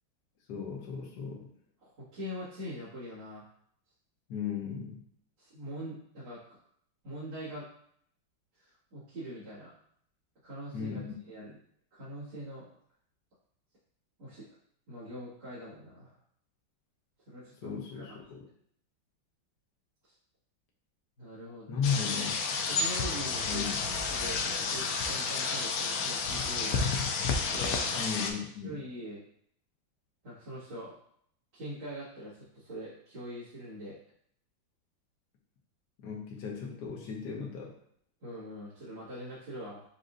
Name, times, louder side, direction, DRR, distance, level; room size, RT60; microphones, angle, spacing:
voice 1, 0.5-1.5 4.3-5.0 10.7-11.2 17.6-18.4 21.7-22.3 23.5-23.8 28.0-28.7 36.0-37.7, left 6 dB, 65° left, -1 dB, 1.4 m, -35 dB
voice 2, 1.8-3.5 5.4-6.6 7.0-7.7 8.6-9.7 10.4-11.6 11.9-12.7 14.2-14.5 14.9-16.2 17.3-18.2 21.2-21.8 22.6-23.6 24.1-26.9 27.5-28.1 28.6-29.2 30.2-31.0 31.5-34.0 38.2-39.8, equal, 85° right, -14 dB, 2.7 m, -43 dB
sound 1, 21.8-28.3, left 4 dB, 80° left, 0.8 m, -31 dB
6.3 x 2.6 x 2.5 m, 0.66 s
omnidirectional pair, 2.1 m